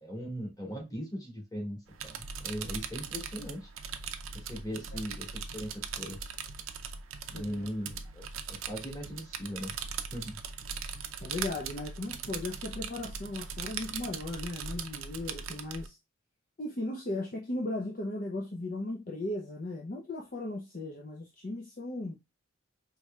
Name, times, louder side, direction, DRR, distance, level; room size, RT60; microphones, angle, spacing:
voice 1, 0.0-3.7 4.3-6.2 7.3-9.7 10.1-10.4, equal, 20° left, 1.7 m, -39 dB
sound 1, 1.9-15.9, right 6 dB, 75° right, 0.6 m, -40 dB
voice 2, 7.3-7.7 11.2-16.0 16.6-22.2, left 2 dB, 40° left, 0.6 m, -37 dB
4.6 x 3.2 x 2.3 m
head